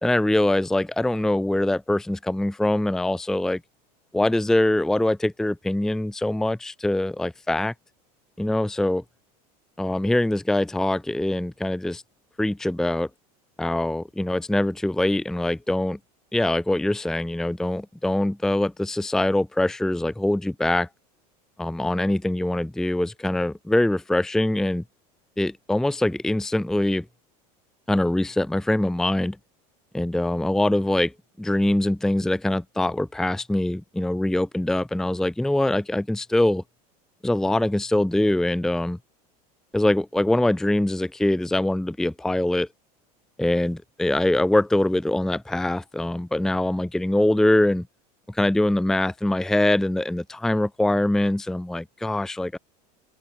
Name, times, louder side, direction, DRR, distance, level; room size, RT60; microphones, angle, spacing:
voice 1, 0.0-3.6 4.1-7.7 8.4-9.0 9.8-12.0 12.4-13.1 13.6-16.0 16.3-20.9 21.6-24.8 25.4-27.0 27.9-29.4 29.9-31.1 31.4-36.6 37.2-39.0 39.7-42.7 43.4-47.9 48.3-52.6, left 1 dB, ahead, 0.6 m, -23 dB
open air
supercardioid pair, 120°, 20 cm